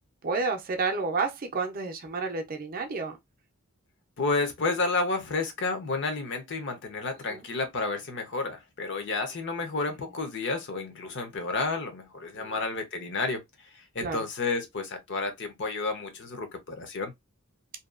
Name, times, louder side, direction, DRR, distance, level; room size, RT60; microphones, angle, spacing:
voice 1, 0.2-3.2 7.2-7.4 12.3-12.6 14.0-14.2, right 4 dB, 40° right, 0.5 m, -30 dB
voice 2, 4.2-13.4 13.7-17.1, left 3 dB, 55° left, 0.7 m, -31 dB
2.7 x 2.3 x 2.4 m
head